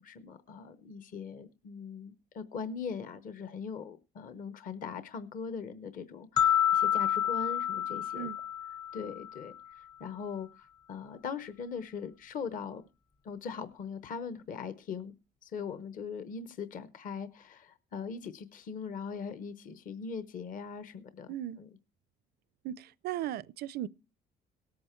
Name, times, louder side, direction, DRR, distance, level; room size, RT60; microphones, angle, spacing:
voice 1, 0.0-8.3 8.9-12.8 13.2-15.1 15.4-21.7, left 6 dB, 55° left, 0.9 m, -40 dB
sound 1, 6.4-9.5, left 10 dB, 25° left, 0.7 m, -29 dB
voice 2, 21.3-21.6 22.6-23.9, right 12 dB, 70° right, 0.5 m, -37 dB
18.0 x 8.6 x 4.5 m
cardioid pair, 110°, 17 cm